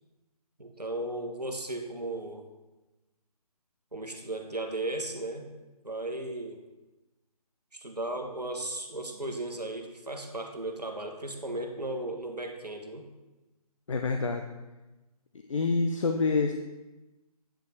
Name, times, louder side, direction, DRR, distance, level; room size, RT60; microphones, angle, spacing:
voice 1, 0.6-2.5 3.9-5.5 5.8-6.6 7.7-13.1, right 1 dB, 85° right, 4 dB, 1.2 m, -36 dB
voice 2, 13.9-14.5 15.5-16.5, left 4 dB, 55° left, 5 dB, 0.5 m, -27 dB
8.8 x 5.1 x 4.0 m, 1.1 s
figure-of-eight pair, 145°, 20 cm